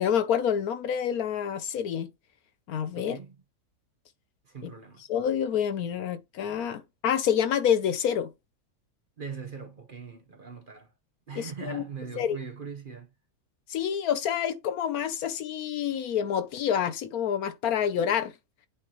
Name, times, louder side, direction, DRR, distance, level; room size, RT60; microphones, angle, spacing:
voice 1, 0.0-2.1 2.7-3.2 4.6-4.7 5.1-8.3 11.3-11.8 12.2-12.4 13.7-18.3, left 8 dB, 70° left, 1.1 m, -27 dB
voice 2, 2.9-3.4 4.4-5.0 9.2-10.9 11.3-13.1, right 6 dB, 40° right, 1.0 m, -41 dB
8.7 x 4.3 x 2.9 m
omnidirectional pair, 1.7 m